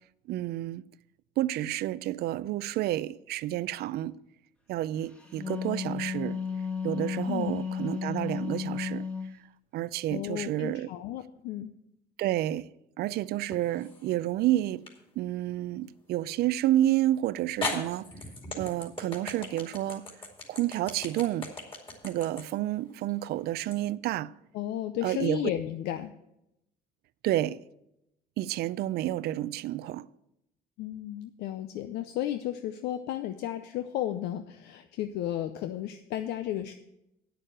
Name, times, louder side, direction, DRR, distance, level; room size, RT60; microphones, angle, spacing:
voice 1, 0.3-0.8 1.4-4.2 4.7-6.4 6.8-9.1 9.7-10.9 12.2-12.7 13.0-14.9 15.2-18.1 18.5-20.1 20.5-21.5 22.0-24.3 25.0-25.4 27.2-27.6 28.4-30.1, right 14 dB, 70° right, 0.4 m, -30 dB
Wind instrument woodwind instrument, 5.2-9.4, left 6 dB, 5° left, 1.2 m, -33 dB
voice 2, 7.3-7.6 10.1-11.7 24.5-26.1 30.8-36.7, left 12 dB, 85° left, 0.6 m, -33 dB
sound 1, 13.5-14.1 14.9-15.0 16.8-16.9 17.6-23.8, left 3 dB, 30° left, 2.6 m, -38 dB
9.1 x 6.7 x 7.6 m
cardioid pair, 110°, 17 cm